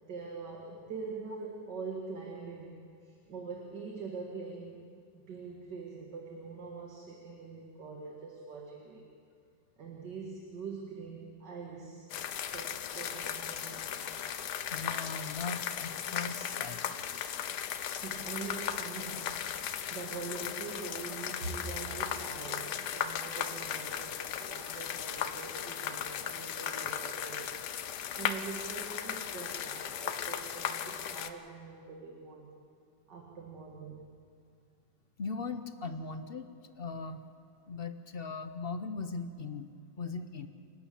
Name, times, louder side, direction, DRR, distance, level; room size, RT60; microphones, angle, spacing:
voice 1, 0.1-2.8 3.0-4.9 5.1-9.1 9.8-12.1 12.5-14.1 17.9-19.4 19.9-27.5 27.9-32.5 33.1-34.1, right 4 dB, 70° right, 0 dB, 2.5 m, -43 dB
sound 1, 12.1-31.3, left 9 dB, 70° left, 1.4 m, -37 dB
voice 2, 14.7-17.0 35.2-36.5 36.8-37.2 37.7-39.7 40.0-40.5, left 4 dB, 45° left, 9 dB, 0.7 m, -39 dB
28.0 x 12.0 x 8.4 m, 2.2 s
omnidirectional pair, 1.9 m